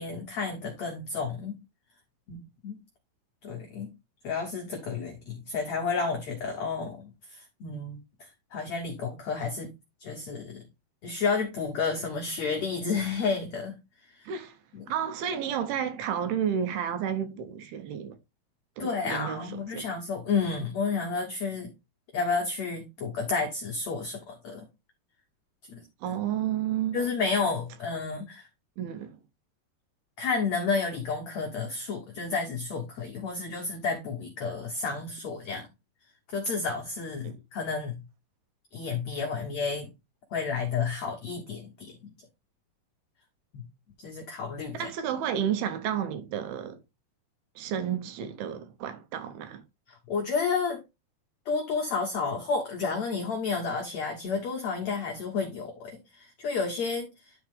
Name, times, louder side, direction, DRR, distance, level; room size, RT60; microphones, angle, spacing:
voice 1, 0.0-1.6 2.3-2.8 3.4-3.9 4.2-9.7 10.0-10.6 11.0-13.8 14.1-14.3 14.7-14.8 18.8-21.7 22.1-24.7 25.7-26.1 26.9-28.5 30.2-35.7 36.3-38.0 38.7-39.9 40.3-42.1 44.0-44.9 49.9-50.8 51.4-57.3, left 4 dB, 80° left, 1.5 m, -31 dB
voice 2, 14.3-14.6 14.9-18.2 18.8-19.9 26.0-27.0 28.8-29.2 37.2-37.4 44.7-46.8 47.6-49.6, right 9 dB, 75° right, 2.6 m, -31 dB
10.5 x 4.2 x 3.5 m
omnidirectional pair, 4.8 m